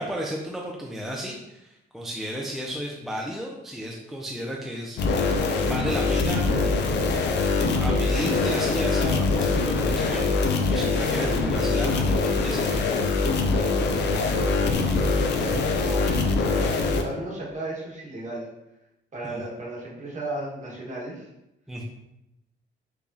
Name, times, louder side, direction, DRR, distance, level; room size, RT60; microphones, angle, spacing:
voice 1, 0.0-5.0 5.7-6.5 7.8-10.3 10.7-12.9 19.2-19.4 21.7-21.8, equal, ahead, -2 dB, 0.4 m, -33 dB
sound 1, 5.0-17.0, left 3 dB, 60° left, 0.5 m, -23 dB
voice 2, 14.1-14.9 15.7-18.5 19.1-21.3, right 1 dB, 40° right, -4 dB, 1.3 m, -35 dB
4.8 x 2.3 x 2.6 m, 0.87 s
cardioid pair, 90°, 20 cm